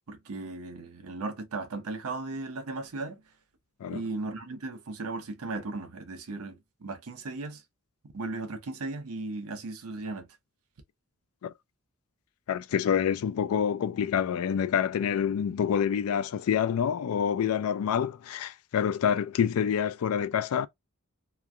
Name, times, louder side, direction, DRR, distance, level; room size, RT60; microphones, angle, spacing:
voice 1, 0.1-3.2 3.9-7.6 8.1-10.3, right 3 dB, 80° right, 0.7 m, -36 dB
voice 2, 12.5-20.7, left 8 dB, 80° left, 0.3 m, -27 dB
3.0 x 2.4 x 2.2 m
head